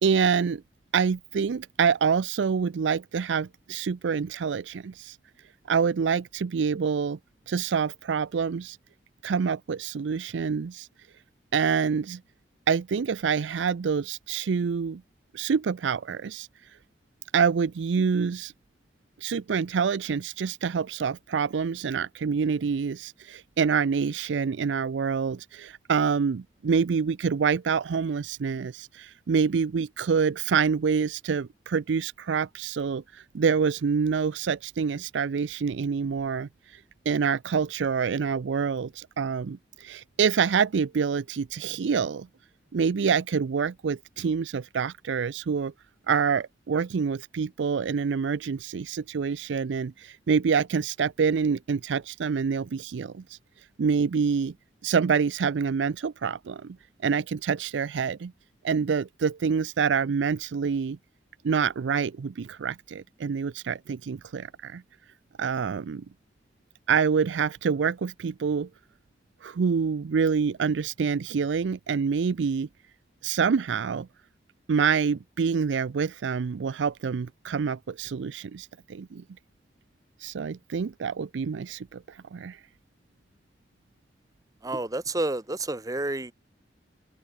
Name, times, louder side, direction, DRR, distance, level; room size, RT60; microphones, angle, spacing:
voice 1, 0.0-0.6 0.9-5.2 5.7-7.2 7.5-8.8 9.2-10.9 11.5-12.2 12.7-15.0 15.3-16.5 17.3-18.5 19.2-36.8 37.1-42.3 42.7-45.7 46.1-53.4 53.8-54.5 54.8-56.8 57.0-58.3 58.6-61.0 61.4-64.8 65.4-66.0 66.9-68.7 69.4-72.7 73.2-74.1 74.7-79.2 80.2-82.6, right 6 dB, 85° right, 0.4 m, -26 dB
voice 2, 84.6-86.3, right 2 dB, 20° right, 1.1 m, -29 dB
head